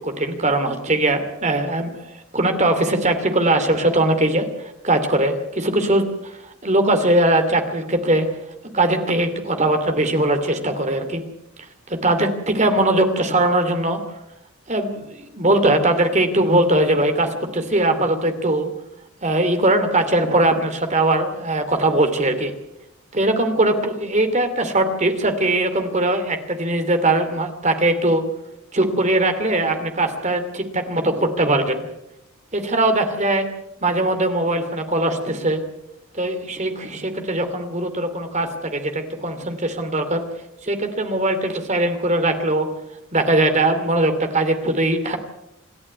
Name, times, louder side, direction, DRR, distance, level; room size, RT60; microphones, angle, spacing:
voice 1, 0.0-8.3 8.7-11.2 11.9-14.0 14.7-18.7 19.2-22.5 23.1-28.2 28.7-31.9 32.5-33.4 33.8-35.6 36.1-40.2 40.6-42.7 43.1-45.2, right 1 dB, 30° right, 7 dB, 2.7 m, -20 dB
27.5 x 11.0 x 9.6 m, 0.87 s
head